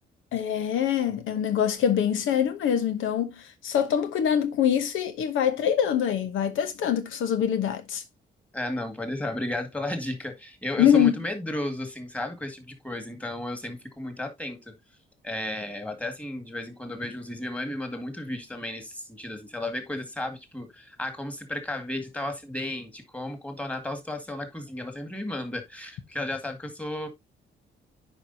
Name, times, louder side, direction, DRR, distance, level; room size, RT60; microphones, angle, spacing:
voice 1, 0.3-8.0 10.8-11.1, left 9 dB, 80° left, 0.9 m, -24 dB
voice 2, 8.5-14.7 15.2-27.1, left 1 dB, 5° left, 1.9 m, -34 dB
9.9 x 4.7 x 2.7 m
cardioid pair, 90°, 20 cm